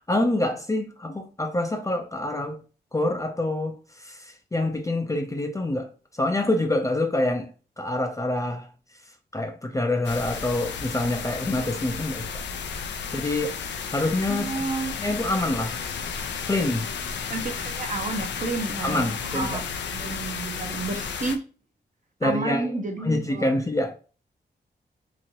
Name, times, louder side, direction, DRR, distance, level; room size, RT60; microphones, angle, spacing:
voice 1, 0.1-2.6 2.9-5.9 6.1-7.5 7.8-8.7 9.3-12.3 13.1-13.6 13.9-14.6 15.0-15.8 16.5-16.8 18.8-19.6 22.2-22.7 23.0-24.0, left 1 dB, 15° left, 0.5 m, -26 dB
sound 1, 10.0-21.4, left 6 dB, 80° left, 0.4 m, -33 dB
voice 2, 14.3-14.9 17.3-19.6 19.9-21.4 22.2-23.5, right 3 dB, 45° right, 0.7 m, -31 dB
2.9 x 2.5 x 2.8 m
cardioid pair, 60°, 18 cm